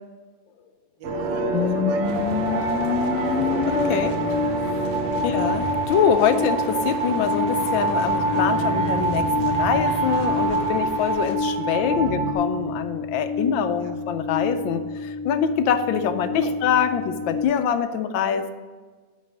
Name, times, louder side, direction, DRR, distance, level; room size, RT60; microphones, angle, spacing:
sound 1, 1.0-12.3, right 2 dB, 45° right, 1.0 m, -25 dB
voice 1, 1.0-3.5 3.9-4.0 11.9-12.1 13.8-14.1 16.4-16.6, right 7 dB, 70° right, 7 dB, 1.2 m, -42 dB
sound 2, 1.5-17.4, left 4 dB, 60° left, 1.0 m, -29 dB
sound 3, 2.0-11.4, right 3 dB, 85° right, 1.8 m, -38 dB
voice 2, 3.5-4.1 4.6-4.9 5.2-18.5, left 8 dB, 80° left, 9 dB, 1.4 m, -24 dB
10.0 x 4.1 x 6.4 m, 1.4 s
omnidirectional pair, 2.1 m